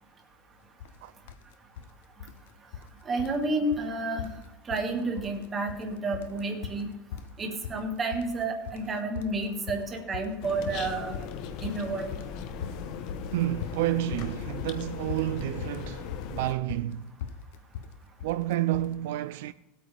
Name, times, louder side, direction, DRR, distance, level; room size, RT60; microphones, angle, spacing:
sound 1, 0.8-1.0 1.3-1.9 2.2-2.9 3.2-3.4 3.7-3.9 4.2-4.9 5.2-5.8 6.1-18.9, left 8 dB, 75° left, 0.7 m, -40 dB
voice 1, 3.1-4.3 4.7-6.9 7.4-11.3 11.6-12.1, right 2 dB, 15° right, 1.8 m, -30 dB
sound 2, 10.4-16.6, left 7 dB, 45° left, 1.0 m, -38 dB
voice 2, 13.3-17.1 18.2-19.5, right 14 dB, 70° right, 0.4 m, -30 dB
18.5 x 8.7 x 3.4 m
supercardioid pair, 170°, 0 cm